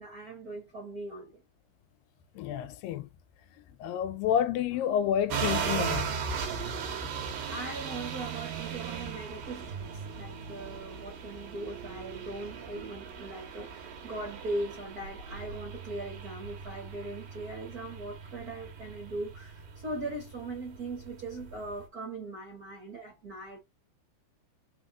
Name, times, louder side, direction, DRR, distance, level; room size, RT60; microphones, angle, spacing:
voice 1, 0.0-1.4 7.5-9.9 10.2-23.6, right 2 dB, 40° right, 1.4 m, -40 dB
voice 2, 2.4-3.1 3.8-6.2, left 9 dB, 90° left, 2.4 m, -29 dB
sound 1, 5.3-21.8, right 6 dB, 90° right, 3.0 m, -38 dB
5.7 x 3.5 x 2.3 m
omnidirectional pair, 3.9 m